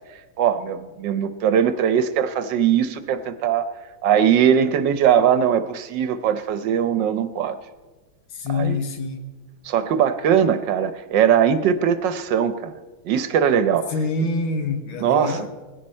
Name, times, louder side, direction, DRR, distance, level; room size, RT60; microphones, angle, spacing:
voice 1, 0.4-3.7 4.0-7.6 8.5-8.8 9.6-12.7 13.0-13.9 15.0-15.5, right 8 dB, 70° right, 1.3 m, -20 dB
voice 2, 8.3-9.3 13.9-15.5, left 3 dB, 80° left, 2.1 m, -26 dB
19.0 x 16.0 x 4.3 m
omnidirectional pair, 2.2 m